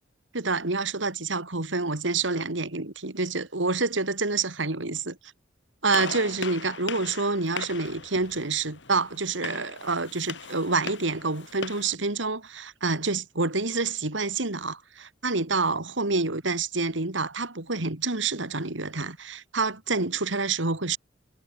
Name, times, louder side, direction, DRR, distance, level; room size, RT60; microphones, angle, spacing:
voice 1, 0.3-5.2 5.8-21.0, right 3 dB, 85° right, 2.8 m, -28 dB
Gunshot gunfire, 5.9-12.0, left 5 dB, 70° left, 3.3 m, -39 dB
head